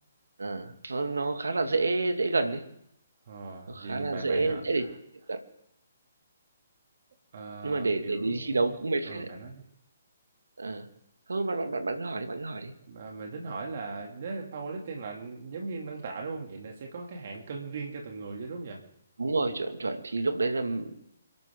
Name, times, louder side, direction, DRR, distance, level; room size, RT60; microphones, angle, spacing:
voice 1, 0.4-2.6 3.7-4.9 5.3-5.4 7.6-9.3 10.6-10.9 11.3-12.7 19.2-20.9, right 3 dB, 75° right, 7 dB, 2.3 m, -29 dB
voice 2, 3.3-4.9 7.3-8.7 9.1-9.6 12.9-18.8, right 4 dB, 50° right, 1 dB, 2.8 m, -39 dB
28.5 x 12.0 x 3.9 m, 0.78 s
figure-of-eight pair, 135°, 0 cm